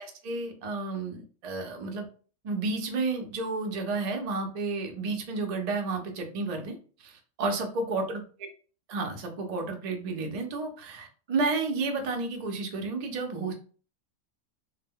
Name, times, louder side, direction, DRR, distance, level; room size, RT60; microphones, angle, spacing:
voice 1, 0.2-2.1 2.4-8.2 8.9-13.5, right 3 dB, 60° right, 3 dB, 0.4 m, -31 dB
2.2 x 2.0 x 3.5 m, 0.39 s
omnidirectional pair, 1.4 m